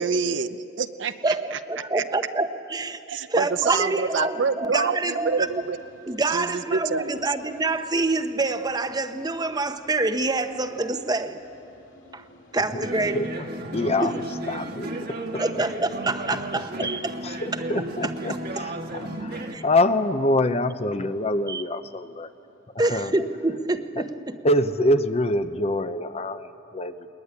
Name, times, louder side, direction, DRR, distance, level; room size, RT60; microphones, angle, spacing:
voice 1, 0.0-2.0 3.1-5.8 6.3-7.2, right 5 dB, 75° right, 11 dB, 0.8 m, -27 dB
voice 2, 1.2-3.0 3.3-5.5 6.1-11.4 12.1-12.2 12.5-13.2 14.0-14.1 15.4-17.1 19.5-19.6 21.5-21.6 22.8-24.1, right 2 dB, 20° right, 9 dB, 0.9 m, -26 dB
sound 1, 5.2-23.9, left 2 dB, 75° left, 2.6 m, -53 dB
Mejdan na konci vesmíru, 12.8-19.6, right 1 dB, 55° right, 1.7 m, -34 dB
voice 3, 13.1-13.5 13.7-14.1 14.5-15.6 16.3-16.9 17.2-22.3 22.7-23.1 24.0-24.1 24.4-27.1, left 1 dB, 35° left, 10 dB, 0.8 m, -26 dB
21.0 x 20.5 x 9.8 m, 2.8 s
head